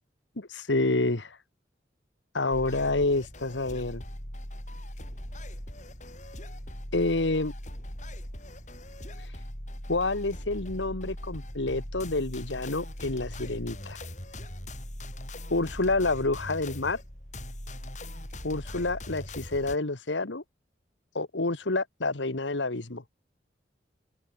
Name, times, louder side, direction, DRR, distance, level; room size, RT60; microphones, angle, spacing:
voice 1, 0.4-1.4 2.3-4.0 6.9-7.5 9.2-9.4 9.9-14.0 15.5-17.0 18.4-20.4 21.1-23.0, left 2 dB, 90° left, 1.7 m, -28 dB
sound 1, 2.5-19.8, left 1 dB, 40° left, 7.8 m, -40 dB
open air
head